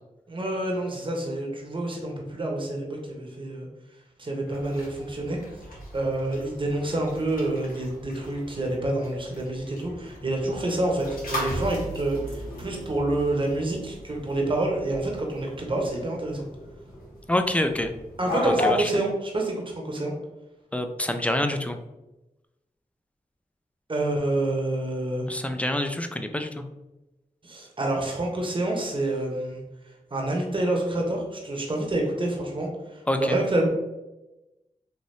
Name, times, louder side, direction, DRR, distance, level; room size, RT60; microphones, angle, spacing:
voice 1, 0.3-3.7 4.2-5.4 5.9-16.5 18.2-20.1 23.9-25.3 27.4-29.6 30.1-33.7, right 2 dB, 35° right, 0 dB, 0.9 m, -28 dB
sound 1, 4.4-18.9, left 1 dB, 80° left, 1.0 m, -36 dB
voice 2, 17.3-17.9 18.4-18.9 20.7-21.8 25.3-26.6 33.1-33.4, left 1 dB, 10° left, 7 dB, 0.4 m, -26 dB
3.3 x 2.6 x 2.6 m, 1.0 s
cardioid pair, 40°, 15 cm